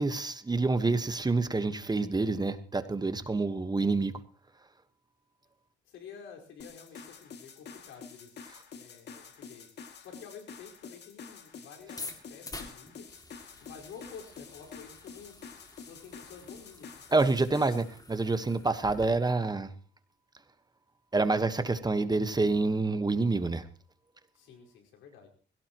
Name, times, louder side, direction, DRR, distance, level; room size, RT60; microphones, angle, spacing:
voice 1, 0.0-4.1 17.1-19.7 21.1-23.6, right 3 dB, 20° right, 1.4 m, -27 dB
voice 2, 5.8-9.7 10.0-13.1 13.6-15.5 15.7-17.0 24.3-25.3, left 6 dB, 85° left, 5.0 m, -50 dB
sound 1, 6.6-17.9, left 5 dB, 60° left, 2.5 m, -48 dB
sound 2, 11.8-19.1, left 2 dB, 20° left, 2.6 m, -48 dB
21.5 x 17.0 x 3.1 m
cardioid pair, 90°, 20 cm